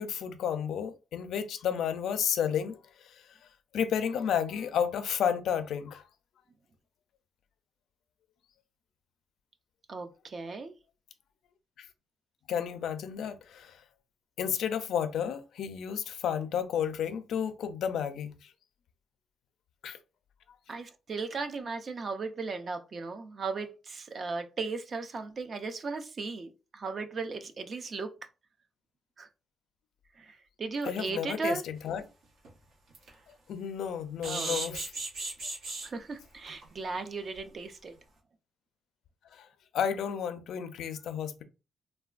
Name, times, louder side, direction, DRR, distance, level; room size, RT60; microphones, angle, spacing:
voice 1, 0.0-2.8 3.0-3.2 3.7-6.0 11.8-11.9 12.5-13.8 14.4-18.5 19.8-20.0 30.8-32.1 33.5-34.8 39.3-39.5 39.7-41.4, left 8 dB, 70° left, 0.4 m, -32 dB
voice 2, 9.9-10.8 20.7-28.1 29.2-29.3 30.2-31.6 34.2-34.8 35.8-37.9, right 4 dB, 35° right, 0.3 m, -36 dB
sound 1, 31.9-32.0 32.5-32.6 32.9-33.1 34.2-35.9 36.5-36.6 36.9-37.0 37.4-37.5, right 2 dB, 90° right, 0.9 m, -35 dB
3.2 x 2.1 x 2.3 m
cardioid pair, 160°, 0 cm